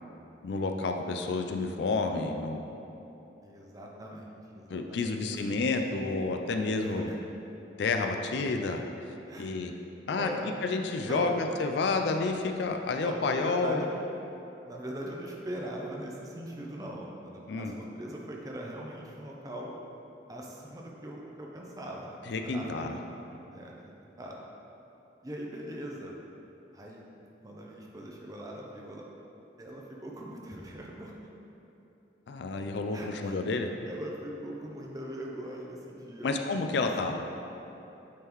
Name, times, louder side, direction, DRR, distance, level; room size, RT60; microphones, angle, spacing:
voice 1, 0.4-2.6 4.7-7.1 7.8-8.8 9.4-9.7 10.1-10.3 10.6-13.8 17.5-17.7 22.3-23.0 32.3-33.7 36.2-37.2, left 3 dB, 70° left, 4 dB, 0.4 m, -30 dB
voice 2, 3.4-5.6 6.8-7.2 9.3-9.6 10.2-10.5 11.1-11.3 13.0-13.9 14.6-19.7 20.3-23.0 23.5-24.4 25.2-26.2 26.7-29.1 29.6-31.1 32.9-33.4 33.9-36.3 36.7-36.9, right 1 dB, 20° right, -1 dB, 0.5 m, -41 dB
8.4 x 3.8 x 3.0 m, 3.0 s
head